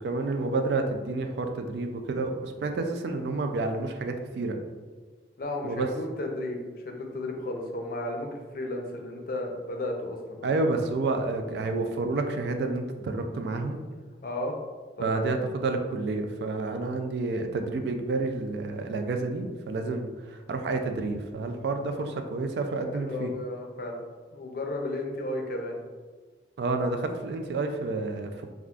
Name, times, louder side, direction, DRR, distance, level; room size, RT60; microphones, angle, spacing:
voice 1, 0.0-4.6 5.6-5.9 10.4-13.8 15.0-23.3 26.6-28.5, right 3 dB, 70° right, 5 dB, 0.3 m, -29 dB
voice 2, 5.4-10.7 14.2-14.6 15.0-15.2 22.9-24.0 24.3-25.8, left 1 dB, 55° left, 2 dB, 0.4 m, -34 dB
3.5 x 2.4 x 2.3 m, 1.4 s
head